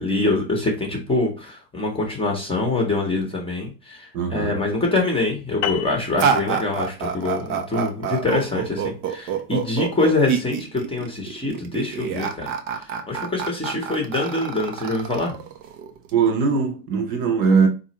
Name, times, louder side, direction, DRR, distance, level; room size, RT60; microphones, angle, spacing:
voice 1, 0.0-12.5 13.1-15.4, left 2 dB, 10° left, 0.8 m, -24 dB
voice 2, 4.1-4.6 16.1-17.7, right 5 dB, 45° right, 0.8 m, -20 dB
sound 1, 5.6-10.4, left 9 dB, 70° left, 0.6 m, -35 dB
sound 2, 6.2-16.1, right 7 dB, 25° right, 0.4 m, -27 dB
3.9 x 2.5 x 2.9 m
hypercardioid pair, 105°, 49 cm